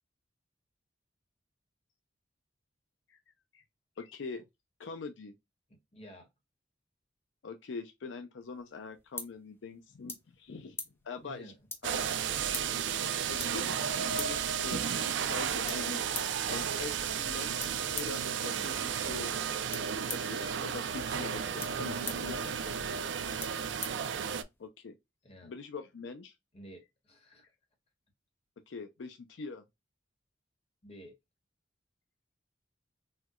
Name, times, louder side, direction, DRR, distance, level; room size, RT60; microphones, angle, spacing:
voice 1, 4.0-4.5 4.8-5.3 7.4-10.8 11.0-11.5 11.8-12.1 13.0-13.9 14.2-16.0 16.5-19.3 20.1-22.4 24.6-24.9 25.4-26.3 28.7-29.6, left 4 dB, 80° left, 0.5 m, -43 dB
voice 2, 5.7-6.3 11.2-11.6 18.5-18.9 22.1-23.3 25.2-25.5 26.5-27.4 30.8-31.2, equal, 35° left, 1.2 m, -51 dB
sound 1, 8.4-24.7, left 3 dB, 15° left, 0.7 m, -47 dB
sound 2, 11.8-24.4, right 7 dB, 75° right, 0.4 m, -33 dB
4.4 x 2.2 x 2.3 m
head